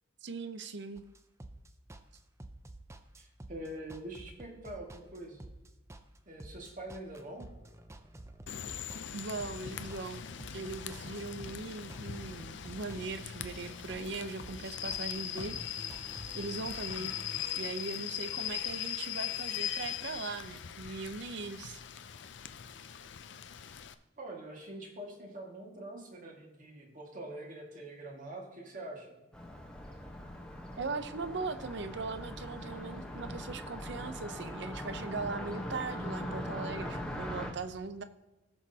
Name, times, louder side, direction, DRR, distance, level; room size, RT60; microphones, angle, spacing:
voice 1, 0.2-1.0 9.1-10.2 10.5-15.6 16.3-17.1 17.5-21.8 30.8-38.0, right 3 dB, 60° right, 11 dB, 0.6 m, -39 dB
sound 1, 1.0-17.4, right 1 dB, 15° right, 0.5 m, -50 dB
voice 2, 3.2-5.4 6.3-7.5 23.7-23.8 24.2-29.1 33.9-34.1, right 1 dB, 40° right, 0 dB, 1.9 m, -45 dB
Rain / Train, 8.5-23.9, left 9 dB, 60° left, 0.5 m, -40 dB
Car passing by, 29.3-37.5, equal, 5° left, 1.0 m, -41 dB
17.5 x 6.1 x 2.8 m, 1.1 s
head